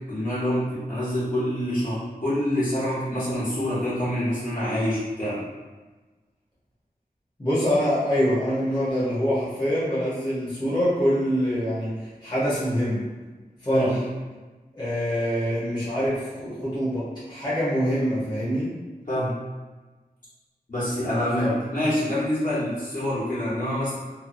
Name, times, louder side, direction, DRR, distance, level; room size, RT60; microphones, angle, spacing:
voice 1, 0.1-5.4 13.7-13.9 19.1-19.3 20.7-23.9, left 1 dB, 55° left, -11 dB, 1.2 m, -26 dB
voice 2, 7.4-13.0 13.6-14.0 14.7-18.7 21.4-21.5, equal, 25° left, -11 dB, 0.9 m, -25 dB
2.6 x 2.3 x 2.6 m, 1.3 s
wide cardioid pair, 70°, 16 cm